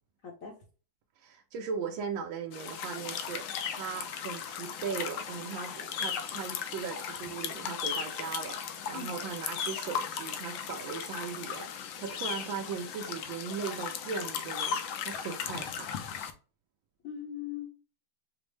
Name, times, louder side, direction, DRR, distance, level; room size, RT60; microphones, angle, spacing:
voice 1, 0.2-0.5 8.9-9.1 17.0-17.7, left 8 dB, 55° left, 0.9 m, -39 dB
voice 2, 1.2-3.4 3.7-15.9, right 6 dB, 80° right, 1.3 m, -38 dB
sound 1, 2.5-16.3, left 7 dB, 80° left, 1.3 m, -37 dB
5.0 x 2.0 x 3.1 m
omnidirectional pair, 2.1 m